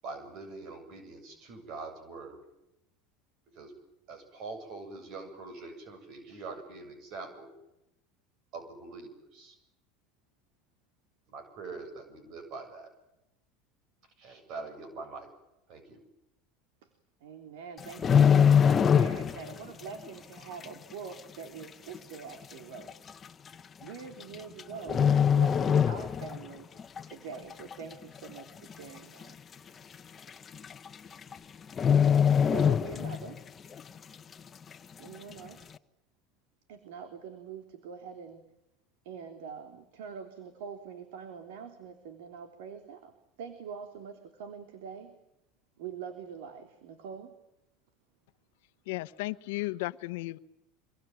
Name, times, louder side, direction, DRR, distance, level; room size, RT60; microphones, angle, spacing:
voice 1, 0.0-2.4 3.6-3.7 4.1-7.5 8.5-9.6 11.3-12.9 14.2-15.3 15.7-16.0, right 3 dB, 55° right, 8 dB, 7.5 m, -43 dB
voice 2, 17.2-22.9 23.8-26.7 27.1-29.4 32.5-33.4 35.0-35.7 36.7-38.4 39.0-43.1 43.4-45.2 45.8-47.3, right 6 dB, 80° right, 6 dB, 3.5 m, -44 dB
sound 1, 17.8-19.5 19.8-20.1 20.6-20.7 21.6-21.7 21.9-22.0 22.9-23.1 24.2-24.6 24.9-26.5 26.8-27.0 27.5-28.0 28.4-28.5 28.7-28.8 29.2-29.3 30.3-30.4 30.6-30.9 31.2-31.3 31.7-33.4 33.7-33.8, left 7 dB, 25° left, 1.1 m, -23 dB
voice 3, 48.9-50.4, left 20 dB, 80° left, 14 dB, 1.1 m, -34 dB
25.5 x 23.0 x 9.3 m, 0.90 s
supercardioid pair, 125°, 0 cm